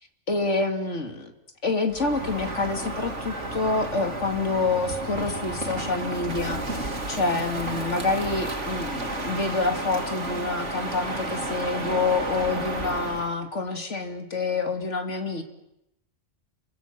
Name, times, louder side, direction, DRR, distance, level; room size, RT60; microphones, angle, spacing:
voice 1, 0.3-1.3 1.6-15.4, left 3 dB, 85° left, 5 dB, 3.2 m, -27 dB
Crow, 1.9-13.3, right 2 dB, 85° right, 3.1 m, -32 dB
30.0 x 25.0 x 7.7 m, 0.83 s
omnidirectional pair, 1.2 m